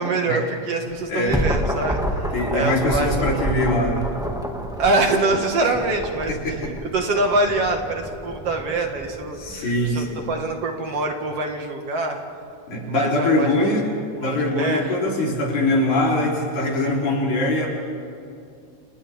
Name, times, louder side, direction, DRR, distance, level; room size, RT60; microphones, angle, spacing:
voice 1, 0.0-2.0 2.5-3.5 4.8-12.2 12.8-13.7 14.2-14.9, right 2 dB, 55° right, 3 dB, 2.8 m, -24 dB
sound 1, 0.9-10.4, equal, ahead, 1.4 m, -29 dB
voice 2, 2.3-4.1 5.6-5.7 6.3-6.7 9.4-10.2 12.7-13.9 14.2-17.7, left 1 dB, 85° left, -3 dB, 5.3 m, -22 dB
30.0 x 29.5 x 3.7 m, 2.5 s
omnidirectional pair, 3.3 m